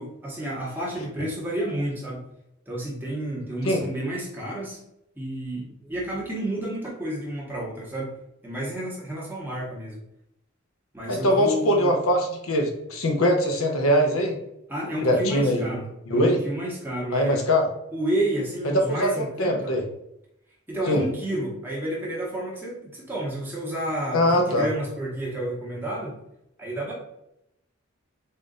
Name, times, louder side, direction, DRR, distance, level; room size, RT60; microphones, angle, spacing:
voice 1, 0.0-2.3 2.7-4.8 5.1-8.1 8.4-10.0 10.9-12.0 14.7-15.8 16.1-17.4 17.9-19.7 20.7-26.2 26.6-26.9, right 1 dB, 10° right, -4 dB, 1.0 m, -30 dB
voice 2, 11.1-14.3 15.0-15.7 16.1-16.4 17.1-17.7 18.6-19.8 20.9-21.0 24.1-24.7, equal, 85° left, 3 dB, 0.8 m, -22 dB
3.8 x 2.5 x 3.8 m, 0.79 s
head